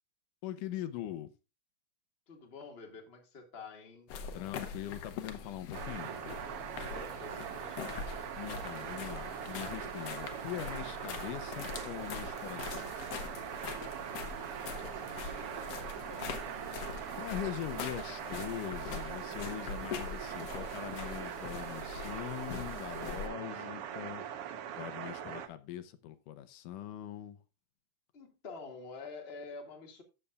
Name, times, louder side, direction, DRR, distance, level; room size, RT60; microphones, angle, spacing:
voice 1, 0.4-1.3 4.3-6.1 8.4-12.9 17.2-24.2 24.8-27.4, left 12 dB, 85° left, 2.4 m, -42 dB
voice 2, 2.3-4.1 6.9-8.1 14.6-16.6 28.1-30.0, left 4 dB, 25° left, 1.7 m, -49 dB
sound 1, 4.1-23.3, left 6 dB, 60° left, 2.0 m, -43 dB
sound 2, 5.7-25.5, right 9 dB, 65° right, 1.5 m, -41 dB
13.5 x 8.3 x 2.4 m
omnidirectional pair, 3.6 m